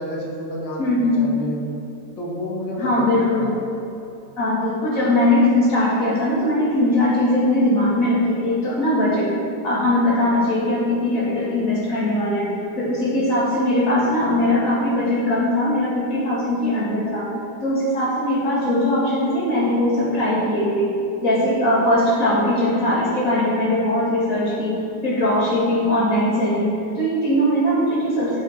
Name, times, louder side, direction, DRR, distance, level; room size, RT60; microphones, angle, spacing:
voice 1, 0.0-1.6 2.2-3.5, equal, 90° left, -4 dB, 2.5 m, -30 dB
voice 2, 0.8-1.3 2.8-3.6 4.4-9.3 9.6-17.3 17.6-20.9 21.2-28.4, left 1 dB, 50° left, -6 dB, 2.8 m, -20 dB
14.0 x 7.1 x 4.4 m, 3.0 s
omnidirectional pair, 2.0 m